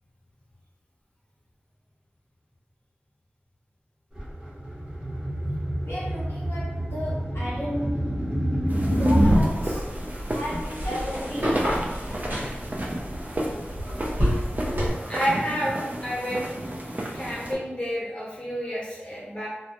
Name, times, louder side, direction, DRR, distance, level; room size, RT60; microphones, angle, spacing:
sound 1, 4.2-9.4, equal, 20° right, 0.8 m, -25 dB
voice 1, 5.8-8.2 8.9-9.9 10.3-11.7, equal, 75° left, -9 dB, 0.7 m, -34 dB
sound 2, 8.7-17.5, right 1 dB, 40° right, 0.4 m, -33 dB
sound 3, 9.2-14.9, equal, 55° right, 1.0 m, -29 dB
voice 2, 15.1-16.4 17.1-19.5, equal, 25° left, -6 dB, 1.0 m, -29 dB
2.2 x 2.0 x 2.8 m, 1.0 s
wide cardioid pair, 60°, 4 cm